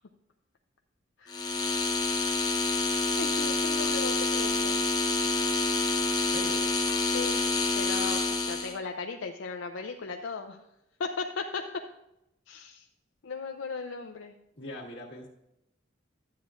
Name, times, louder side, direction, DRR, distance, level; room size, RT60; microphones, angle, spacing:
voice 1, 1.2-1.6 3.2-4.8 7.0-7.4 7.8-10.6 11.0-11.6 12.5-12.8 13.2-14.3, left 4 dB, 85° left, 4 dB, 0.5 m, -37 dB
sound 1, 1.3-8.8, left 3 dB, 20° left, 0.6 m, -27 dB
voice 2, 6.2-6.6 14.5-15.3, left 1 dB, 65° left, -3 dB, 1.7 m, -42 dB
12.0 x 8.4 x 2.5 m, 0.86 s
head